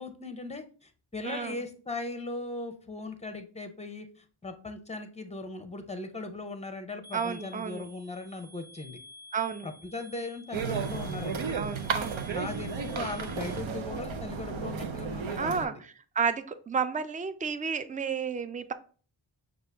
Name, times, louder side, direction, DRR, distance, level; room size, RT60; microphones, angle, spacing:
voice 1, 0.0-9.0 9.6-11.6 12.3-15.8, left 2 dB, 15° left, 7 dB, 0.7 m, -38 dB
voice 2, 1.2-1.6 7.1-7.9 9.3-9.7 11.5-12.3 15.4-15.7 16.2-18.7, right 6 dB, 20° right, 11 dB, 0.3 m, -31 dB
sound 1, 7.0-13.6, left 1 dB, 50° right, 1.0 m, -51 dB
sound 2, 10.5-15.7, right 5 dB, 75° right, 0.7 m, -33 dB
6.2 x 2.5 x 3.4 m, 0.39 s
wide cardioid pair, 110°, 46 cm